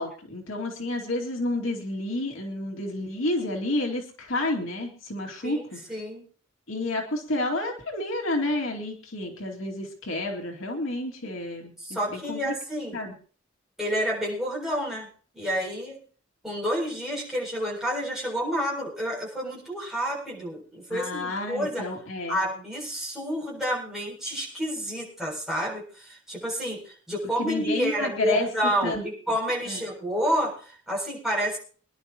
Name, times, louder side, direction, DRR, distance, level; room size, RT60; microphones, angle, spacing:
voice 1, 0.0-5.8 6.7-12.5 12.9-13.1 20.9-22.4 27.4-28.5 28.8-29.0 29.7-29.8, left 2 dB, 85° left, 1 dB, 2.5 m, -30 dB
voice 2, 5.9-6.3 11.8-13.0 13.8-15.1 15.3-16.0 16.4-21.8 22.3-31.6, equal, ahead, -5 dB, 7.3 m, -29 dB
25.0 x 11.0 x 3.0 m, 0.42 s
head